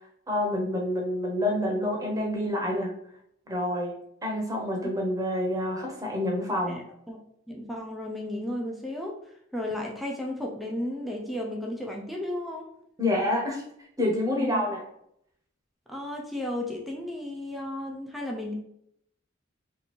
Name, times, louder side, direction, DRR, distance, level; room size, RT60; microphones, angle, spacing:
voice 1, 0.3-2.9 3.5-3.9 4.2-6.8 13.0-13.6 14.0-14.8, left 1 dB, 20° right, -1 dB, 0.9 m, -27 dB
voice 2, 6.7-7.2 7.5-9.2 9.5-12.7 14.3-14.6 15.9-18.5, left 1 dB, ahead, -1 dB, 0.5 m, -34 dB
3.0 x 2.7 x 4.2 m, 0.71 s
head